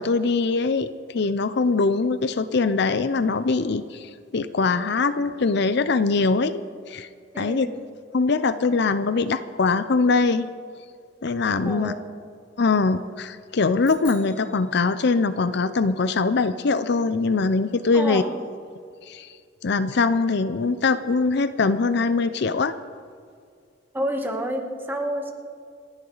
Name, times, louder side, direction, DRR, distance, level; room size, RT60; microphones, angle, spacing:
voice 1, 0.0-6.6 6.9-7.1 7.4-7.7 8.1-10.5 11.2-11.9 12.6-18.2 19.1-19.3 19.6-22.8, left 4 dB, 60° left, 13 dB, 0.5 m, -22 dB
voice 2, 7.3-7.7 11.6-12.1 17.9-18.3 23.9-25.3, equal, 10° right, 3 dB, 1.5 m, -29 dB
sound 1, 13.8-15.5, left 3 dB, 25° left, 4.9 m, -48 dB
29.0 x 9.7 x 4.0 m, 2.2 s
head